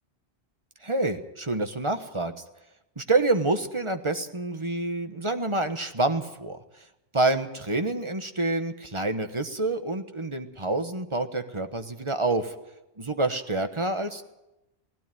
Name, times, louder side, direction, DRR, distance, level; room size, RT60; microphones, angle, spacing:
voice 1, 0.8-2.3 3.0-6.6 7.1-12.5 13.0-14.2, right 2 dB, 30° right, 8 dB, 1.3 m, -27 dB
18.0 x 16.0 x 9.2 m, 0.96 s
omnidirectional pair, 1.1 m